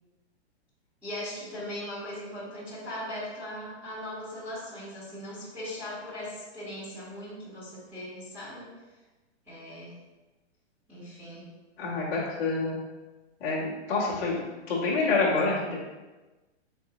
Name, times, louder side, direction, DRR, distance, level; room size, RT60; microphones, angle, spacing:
voice 1, 1.0-8.7 9.5-9.9 10.9-11.5, left 1 dB, 5° right, -11 dB, 0.8 m, -39 dB
voice 2, 11.8-12.8 13.4-15.8, left 3 dB, 15° left, -8 dB, 0.5 m, -27 dB
3.9 x 3.5 x 2.8 m, 1.2 s
hypercardioid pair, 170°, 34 cm